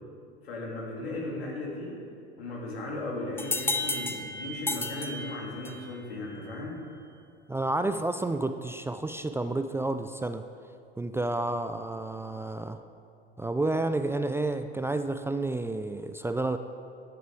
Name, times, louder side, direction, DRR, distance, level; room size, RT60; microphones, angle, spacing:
voice 1, 0.4-2.0 2.4-6.8, left 2 dB, 80° left, -3 dB, 3.1 m, -36 dB
sound 1, 3.4-5.9, left 2 dB, 10° left, 0.9 m, -32 dB
voice 2, 7.5-10.4 11.0-12.8 13.4-16.6, right 2 dB, 10° right, 9 dB, 0.4 m, -30 dB
13.5 x 9.3 x 4.8 m, 2.4 s
hypercardioid pair, 80°, 30 cm